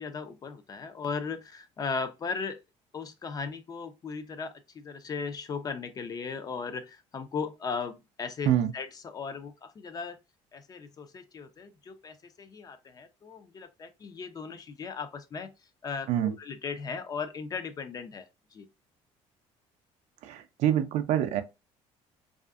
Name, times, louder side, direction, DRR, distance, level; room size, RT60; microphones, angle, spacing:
voice 1, 0.0-2.6 2.9-10.2 10.5-15.5 15.8-18.3 18.5-18.7, left 5 dB, 30° left, 0.4 m, -37 dB
voice 2, 20.2-21.4, right 11 dB, 70° right, 0.4 m, -26 dB
2.5 x 2.4 x 2.4 m
cardioid pair, 125°, 12 cm